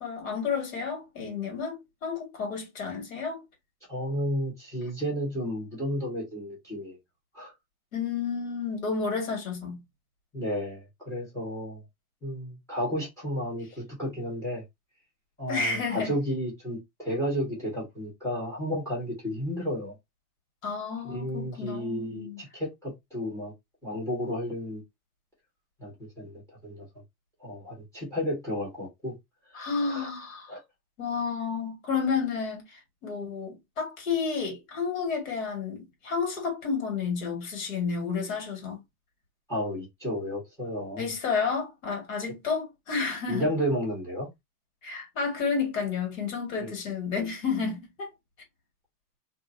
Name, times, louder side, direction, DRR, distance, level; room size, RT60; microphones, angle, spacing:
voice 1, 0.0-1.8 2.0-3.4 7.9-9.8 15.5-16.1 20.6-22.4 29.6-30.5 31.0-38.8 41.0-43.5 44.8-48.1, left 5 dB, 55° left, 2.0 m, -31 dB
voice 2, 3.9-7.0 7.3-7.5 10.3-11.8 12.2-14.6 15.4-19.9 21.0-23.5 23.8-24.8 25.8-25.9 26.2-26.9 27.4-29.1 29.6-30.1 30.5-30.6 39.5-41.1 43.3-44.3 46.6-46.7, equal, 5° left, 1.2 m, -32 dB
2.8 x 2.6 x 2.6 m
supercardioid pair, 160°, 50 cm